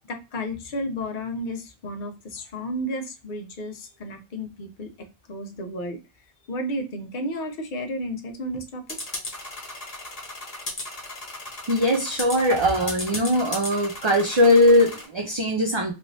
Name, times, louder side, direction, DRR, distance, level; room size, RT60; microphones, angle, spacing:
voice 1, 0.0-4.9 5.3-6.0 6.5-9.0, equal, 55° left, 4 dB, 0.9 m, -32 dB
sound 1, 8.9-15.0, left 2 dB, 40° left, 1.2 m, -35 dB
voice 2, 11.7-15.9, left 1 dB, 35° right, 1 dB, 0.5 m, -20 dB
3.3 x 3.0 x 2.6 m, 0.29 s
omnidirectional pair, 1.0 m